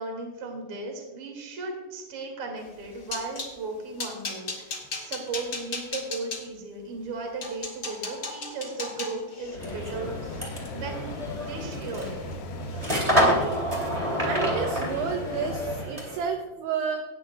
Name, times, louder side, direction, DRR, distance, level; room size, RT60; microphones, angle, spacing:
voice 1, 0.0-10.4 10.7-12.2, right 3 dB, 40° right, 2 dB, 2.1 m, -36 dB
sound 1, 2.7-3.5 4.0-6.4 7.0-7.1 7.4-11.6 12.0-12.4 12.6-12.9 13.3-13.4, left 3 dB, 90° left, 0.9 m, -37 dB
sound 2, 9.5-16.3, equal, 15° right, 1.2 m, -28 dB
sound 3, 9.6-15.8, left 1 dB, 70° left, 2.7 m, -37 dB
voice 2, 14.2-17.0, right 6 dB, 80° right, 3 dB, 2.4 m, -30 dB
18.5 x 10.0 x 2.3 m, 1.2 s
omnidirectional pair, 5.5 m